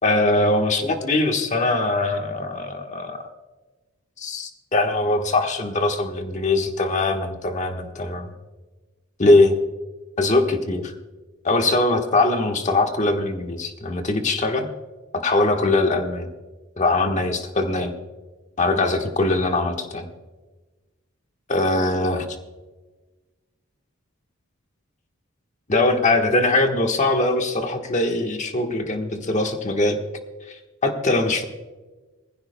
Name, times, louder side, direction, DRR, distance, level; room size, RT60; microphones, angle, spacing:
voice 1, 0.0-3.2 4.2-8.3 9.2-9.6 10.2-10.9 11.4-14.7 15.1-16.3 16.8-17.9 18.6-20.1 21.5-22.2 25.7-30.0 30.5-31.4, left 2 dB, 35° left, 4 dB, 1.3 m, -21 dB
20.5 x 15.5 x 2.2 m, 1.2 s
head